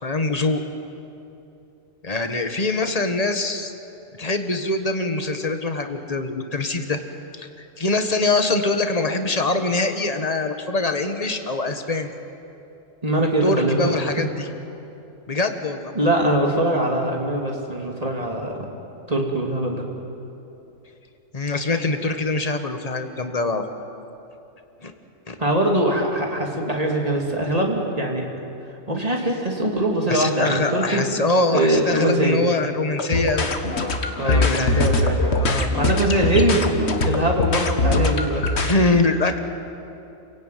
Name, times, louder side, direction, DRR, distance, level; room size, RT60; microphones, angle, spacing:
voice 1, 0.0-0.6 2.0-3.7 4.1-7.0 7.3-7.5 7.8-12.1 13.2-14.5 15.3-15.9 21.3-23.6 24.8-24.9 25.3-25.4 30.1-33.5 34.2-34.8 35.3-35.7 38.6-39.4, left 2 dB, 30° left, 7 dB, 1.6 m, -23 dB
voice 2, 13.0-13.9 15.9-18.7 19.1-19.8 25.4-28.3 28.9-31.0 31.5-32.4 34.2-35.3 35.7-36.8 37.0-38.7, right 1 dB, 30° right, 0 dB, 3.1 m, -22 dB
sound 1, 32.9-38.7, left 2 dB, 55° left, 1.8 m, -22 dB
29.0 x 17.0 x 9.4 m, 2.8 s
omnidirectional pair, 1.4 m